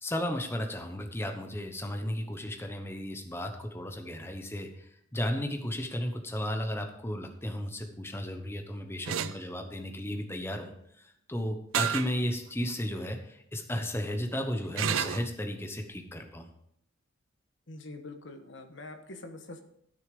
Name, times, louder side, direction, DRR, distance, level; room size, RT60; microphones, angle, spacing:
voice 1, 0.0-16.5, left 1 dB, 10° left, 4 dB, 1.0 m, -34 dB
sound 1, 9.1-9.4 11.7-12.1 12.7-12.8 14.8-15.3, right 9 dB, 90° right, 0.5 m, -30 dB
voice 2, 17.7-19.6, left 2 dB, 65° left, 6 dB, 1.3 m, -44 dB
13.0 x 6.6 x 5.2 m, 0.71 s
head